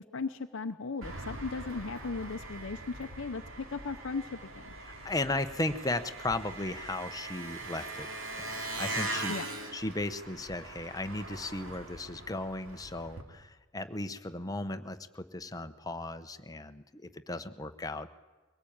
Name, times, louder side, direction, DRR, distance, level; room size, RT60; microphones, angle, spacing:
voice 1, 0.1-4.7 9.3-9.5, left 4 dB, 60° left, 7 dB, 0.7 m, -37 dB
Engine, 1.0-13.2, right 2 dB, 65° right, 2.9 m, -41 dB
voice 2, 4.8-9.3 9.7-18.1, left 2 dB, 15° left, 9 dB, 0.9 m, -36 dB
23.0 x 18.5 x 8.7 m, 1.4 s
head